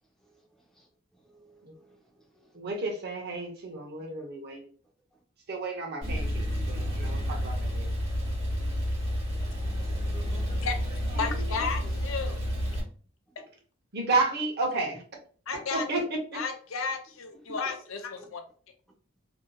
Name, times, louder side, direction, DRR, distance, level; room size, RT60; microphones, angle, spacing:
voice 1, 0.2-2.6 6.7-7.2 8.6-8.9 9.3-10.7 18.2-18.3, right 2 dB, ahead, -1 dB, 0.6 m, -60 dB
voice 2, 2.5-4.7 5.5-7.9 11.1-11.3 13.9-15.0 15.5-16.4, right 3 dB, 50° right, 1 dB, 0.7 m, -32 dB
Male speech man speaking / Car / Idling, 6.0-12.8, equal, 30° right, 1.3 m, -30 dB
voice 3, 11.2-12.4 15.5-15.9 16.3-18.4, left 5 dB, 75° left, 5 dB, 0.5 m, -33 dB
2.7 x 2.7 x 2.2 m, 0.42 s
head